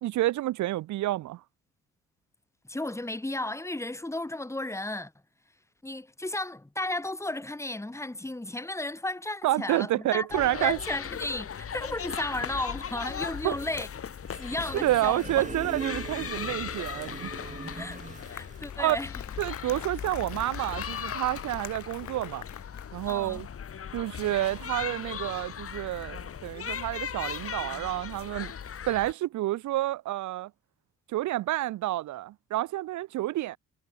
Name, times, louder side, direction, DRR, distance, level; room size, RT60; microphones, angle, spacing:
voice 1, 0.0-1.4 9.4-10.8 13.4-13.6 14.7-17.3 18.8-19.0 19.4-22.5 22.9-23.5 23.9-28.5 28.9-30.5 31.1-33.6, right 15 dB, 70° right, 0.7 m, -29 dB
voice 2, 2.7-5.1 5.8-13.9 14.4-15.4 17.8-18.0 18.2-19.1 23.1-23.4, left 2 dB, 10° left, 2.7 m, -34 dB
sound 1, 10.3-29.1, left 8 dB, 50° left, 2.8 m, -38 dB
sound 2, 14.3-18.7, right 4 dB, 25° right, 2.6 m, -41 dB
Applause, 17.9-23.4, left 12 dB, 70° left, 2.1 m, -44 dB
cardioid pair, 90°, 30 cm